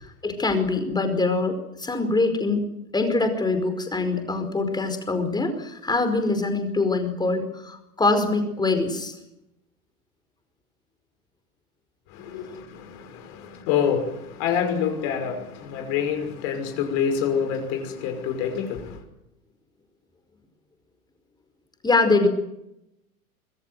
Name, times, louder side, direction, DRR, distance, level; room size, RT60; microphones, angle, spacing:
voice 1, 0.2-2.7 2.9-9.2 21.8-22.3, left 3 dB, 10° left, 5.0 m, -23 dB
voice 2, 12.1-19.0, left 7 dB, 45° left, 5.8 m, -27 dB
25.5 x 21.5 x 7.9 m
figure-of-eight pair, 100°, 44 cm